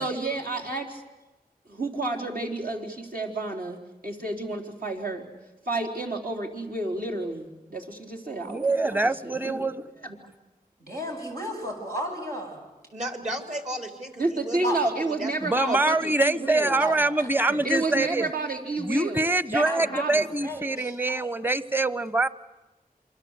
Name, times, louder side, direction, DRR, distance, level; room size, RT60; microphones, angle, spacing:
voice 1, 0.0-1.0 1.7-5.3 5.7-9.7 10.0-10.2 14.2-16.8 17.6-20.3, right 2 dB, 70° right, -1 dB, 3.9 m, -31 dB
voice 2, 8.4-9.8 15.4-18.3 18.8-22.3, right 2 dB, 15° right, 16 dB, 1.0 m, -24 dB
voice 3, 10.8-12.6 14.6-14.8 16.8-17.6 17.9-18.0 19.6-20.0 20.4-21.3, equal, 90° right, -2 dB, 7.8 m, -34 dB
voice 4, 12.9-15.3 15.6-15.8, equal, 50° right, 6 dB, 3.9 m, -34 dB
27.5 x 24.0 x 8.2 m, 1.1 s
wide cardioid pair, 45°, 15 cm